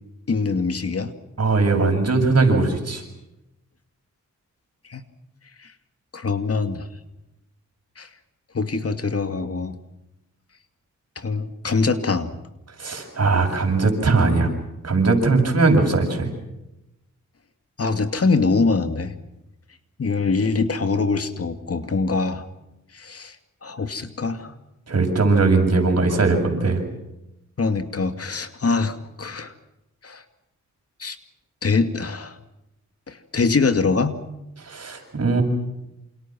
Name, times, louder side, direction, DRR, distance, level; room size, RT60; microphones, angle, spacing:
voice 1, 0.3-1.1 4.9-5.0 6.1-6.9 8.0-8.1 8.5-9.7 11.2-12.3 17.8-19.1 20.0-22.4 22.9-23.4 23.6-24.5 27.6-29.5 30.0-30.2 31.0-31.2 31.6-32.4 33.1-34.2, left 4 dB, 50° left, 8 dB, 2.4 m, -23 dB
voice 2, 1.4-3.0 12.8-14.5 14.8-16.3 24.9-26.8 34.6-35.4, right 3 dB, 55° right, 3 dB, 7.6 m, -19 dB
28.5 x 28.0 x 6.2 m, 0.91 s
cardioid pair, 85°, 30 cm